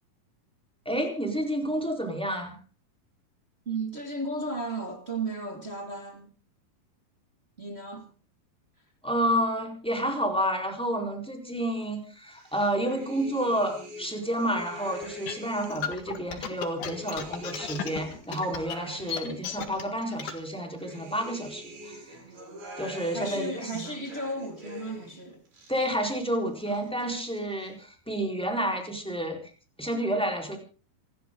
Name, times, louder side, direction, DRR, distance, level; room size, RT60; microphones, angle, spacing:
voice 1, 0.9-2.6 9.0-22.2 22.8-23.9 25.7-29.4 29.8-30.6, right 1 dB, ahead, 3.8 m, -30 dB
voice 2, 3.7-6.3 7.6-8.1 23.1-25.4 26.7-26.9, right 2 dB, 20° right, 2.1 m, -34 dB
sound 1, 12.3-16.0 16.4-19.9 20.3-25.2 25.5-26.3 26.6-27.4, equal, 75° right, 7.5 m, -44 dB
sound 2, 15.0-20.4, left 8 dB, 60° left, 3.1 m, -35 dB
27.0 x 13.5 x 3.9 m
omnidirectional pair, 4.3 m